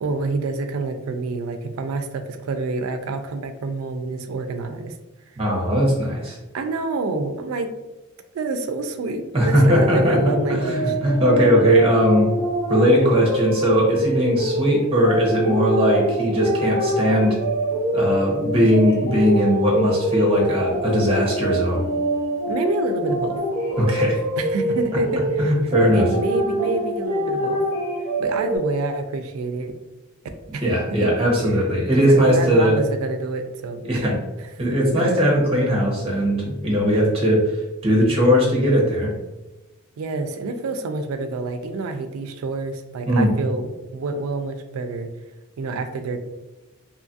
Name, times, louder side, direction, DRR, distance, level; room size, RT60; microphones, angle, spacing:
voice 1, 0.0-4.9 6.5-7.7 8.3-11.0 22.5-23.4 24.4-25.5 25.9-27.6 28.2-29.7 30.5-30.7 31.0-31.1 32.0-34.0 34.4-34.7 40.0-45.1 45.6-46.2, right 3 dB, 75° right, 8 dB, 0.3 m, -27 dB
voice 2, 5.4-6.4 9.3-12.3 12.7-17.4 17.9-21.8 23.8-24.2 25.4-26.1 30.6-32.8 33.8-34.2 34.6-37.4 37.8-39.1 43.1-43.3, equal, 25° right, -2 dB, 0.7 m, -19 dB
sound 1, 9.5-28.6, equal, 40° left, 1.4 m, -25 dB
2.7 x 2.4 x 2.6 m, 1.0 s
head